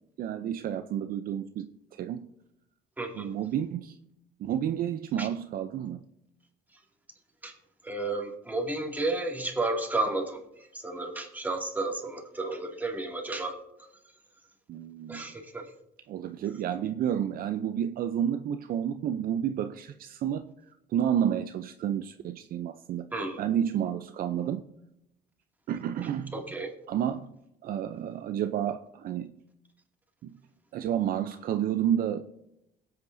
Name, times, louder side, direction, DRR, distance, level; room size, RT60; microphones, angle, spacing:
voice 1, 0.2-2.3 3.1-4.0 4.4-6.0 14.7-15.3 16.1-20.4 20.9-23.1 23.4-24.6 25.7-26.3 26.9-27.3 27.6-29.3 30.2-30.3 30.7-32.3, right 9 dB, 60° right, 9 dB, 0.5 m, -30 dB
voice 2, 3.0-3.3 5.2-5.3 7.4-7.5 7.8-13.6 15.1-15.7 23.1-23.4 26.3-26.7, right 2 dB, 10° right, 0 dB, 2.3 m, -32 dB
22.0 x 8.3 x 2.7 m, 0.84 s
cardioid pair, 110°, 17 cm